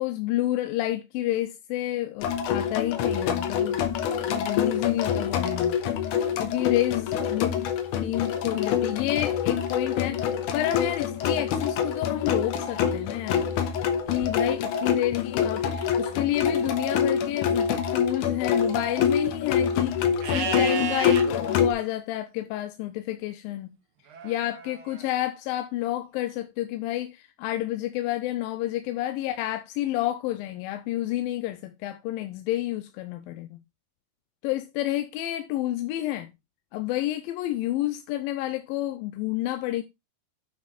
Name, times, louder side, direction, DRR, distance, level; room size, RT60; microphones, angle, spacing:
voice 1, 0.0-3.8 4.3-5.8 6.4-13.5 14.1-15.7 16.0-23.8 24.2-33.6 34.4-36.3 36.7-39.8, left 14 dB, 85° left, 2.3 m, -29 dB
sound 1, 2.2-21.7, left 7 dB, 70° left, 2.3 m, -26 dB
Livestock farm animals working animals, 20.2-21.2 24.1-25.0, right 7 dB, 80° right, 1.2 m, -32 dB
9.3 x 4.9 x 4.1 m
omnidirectional pair, 4.1 m